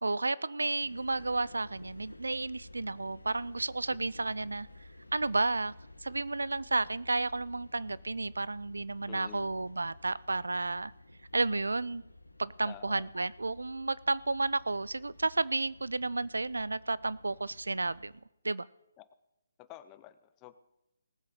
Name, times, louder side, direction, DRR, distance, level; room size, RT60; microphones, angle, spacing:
voice 1, 0.0-4.7 5.1-5.7 6.0-10.9 11.3-12.0 12.4-18.1 18.4-18.7, right 3 dB, 75° right, 20 dB, 0.4 m, -32 dB
sound 1, 0.8-18.2, left 2 dB, 90° left, 1.2 m, -54 dB
voice 2, 9.1-9.5 12.7-13.1 19.0-19.1 19.6-20.6, left 13 dB, 20° left, 14 dB, 0.6 m, -49 dB
19.0 x 7.7 x 4.9 m, 0.89 s
figure-of-eight pair, 140°, 0 cm